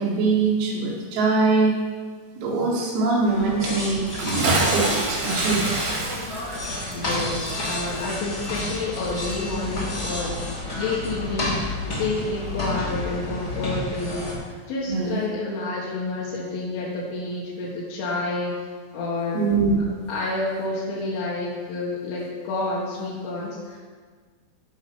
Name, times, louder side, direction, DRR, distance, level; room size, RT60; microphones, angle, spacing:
voice 1, 0.0-1.8 2.4-5.6 14.9-15.1 19.3-19.8, right 3 dB, 90° right, -5 dB, 4.8 m, -23 dB
sound 1, 3.3-14.3, left 1 dB, 45° left, 1.2 m, -30 dB
Bathtub (filling or washing) / Splash splatter, 4.1-9.0 9.3-9.4, right 2 dB, 60° right, 2.1 m, -27 dB
voice 2, 6.9-10.5 10.8-11.6 12.0-18.6 18.9-19.4 19.8-23.8, left 2 dB, 75° left, -6 dB, 4.0 m, -29 dB
15.5 x 5.5 x 5.6 m, 1.5 s
omnidirectional pair, 5.8 m